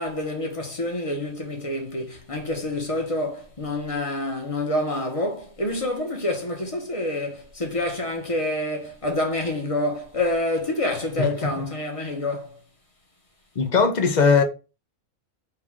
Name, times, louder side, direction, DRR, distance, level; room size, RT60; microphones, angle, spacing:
voice 1, 0.0-12.5, left 1 dB, 30° left, 1.0 m, -27 dB
voice 2, 11.2-11.6 13.6-14.4, left 5 dB, 50° left, 0.5 m, -20 dB
4.7 x 2.4 x 3.6 m
omnidirectional pair, 1.4 m